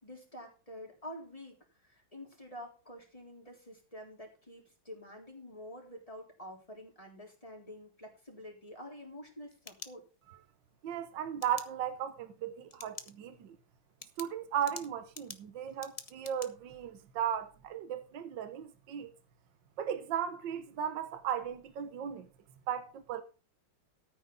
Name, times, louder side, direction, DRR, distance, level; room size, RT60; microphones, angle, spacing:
voice 1, 0.0-10.0, left 1 dB, 15° left, 3.8 m, -48 dB
sound 1, 9.3-10.5 11.4-11.7 12.7-13.1 13.5-13.6 14.0-16.5, left 4 dB, 35° left, 0.6 m, -47 dB
voice 2, 10.8-13.6 14.2-19.1 19.8-22.3 22.7-23.2, right 9 dB, 70° right, 1.6 m, -36 dB
13.5 x 9.3 x 4.0 m
omnidirectional pair, 2.2 m